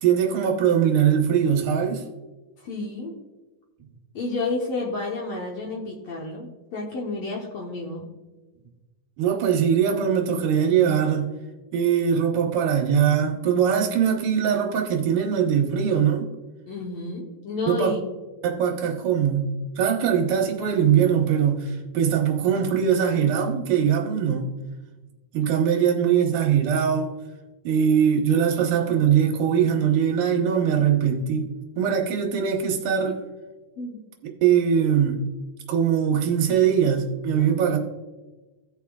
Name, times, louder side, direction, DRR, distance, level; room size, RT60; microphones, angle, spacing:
voice 1, 0.0-2.0 9.2-11.3 11.7-16.3 17.7-18.0 18.4-24.5 25.3-27.1 27.6-31.5 31.8-33.2 34.4-35.2 35.7-37.8, right 8 dB, 75° right, 0 dB, 2.7 m, -21 dB
voice 2, 2.6-3.1 4.1-8.1 16.7-18.1 33.8-34.0, left 3 dB, 65° left, -2 dB, 1.8 m, -30 dB
17.0 x 5.8 x 2.3 m, 1.2 s
omnidirectional pair, 3.9 m